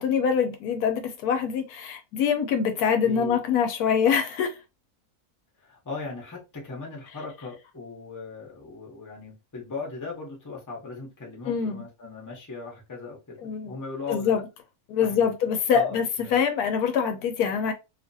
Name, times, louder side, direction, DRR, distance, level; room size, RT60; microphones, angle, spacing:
voice 1, 0.0-4.5 11.5-11.8 13.4-13.7 14.1-14.4 14.9-16.1 16.3-17.7, left 7 dB, 85° left, 1.1 m, -24 dB
voice 2, 3.0-3.4 5.6-14.4 15.0-15.3 15.7-16.4, left 4 dB, 15° left, 0.6 m, -38 dB
2.8 x 2.4 x 2.6 m
omnidirectional pair, 1.6 m